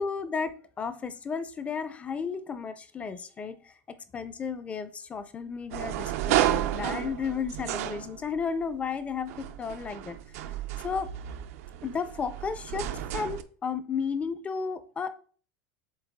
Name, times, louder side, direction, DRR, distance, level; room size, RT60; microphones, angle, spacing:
voice 1, 0.0-10.2 10.8-11.1 11.8-15.1, left 5 dB, 15° left, 0.5 m, -33 dB
sound 1, 5.7-8.6 9.2-13.4, right 13 dB, 70° right, 0.6 m, -32 dB
7.3 x 3.7 x 3.5 m
supercardioid pair, 155°, 8 cm